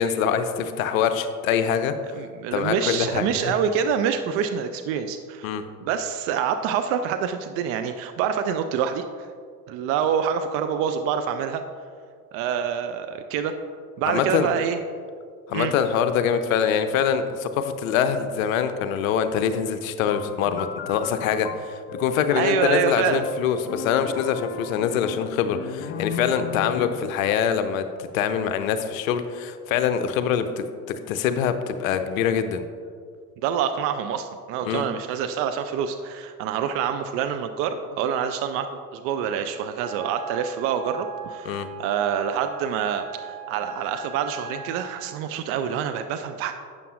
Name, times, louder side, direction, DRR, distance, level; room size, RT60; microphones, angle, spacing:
voice 1, 0.0-1.9 2.5-3.6 5.4-5.6 14.1-14.5 15.5-32.6 34.7-34.9 41.5-41.7, left 8 dB, 60° left, 10 dB, 0.7 m, -24 dB
voice 2, 2.1-5.5 5.8-9.0 9.7-11.6 12.3-13.6 14.0-14.8 15.5-15.7 22.3-23.2 33.4-46.5, right 8 dB, 30° right, 8 dB, 0.4 m, -26 dB
sound 1, 20.1-27.2, left 6 dB, 25° left, 0.5 m, -36 dB
Wind instrument woodwind instrument, 39.8-45.1, right 6 dB, 80° right, 1.0 m, -39 dB
12.0 x 8.2 x 2.5 m, 2.1 s
figure-of-eight pair, 70°, 47 cm